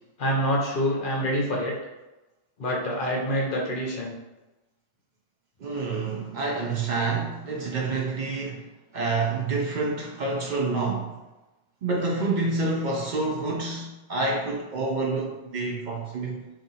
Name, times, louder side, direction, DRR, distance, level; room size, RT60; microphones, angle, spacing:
voice 1, 0.2-1.7 2.6-4.2, equal, 55° left, -2 dB, 0.7 m, -26 dB
voice 2, 5.6-8.6 8.9-11.1 11.8-16.4, right 3 dB, 60° right, -2 dB, 0.5 m, -28 dB
2.7 x 2.6 x 3.8 m, 1.1 s
omnidirectional pair, 1.3 m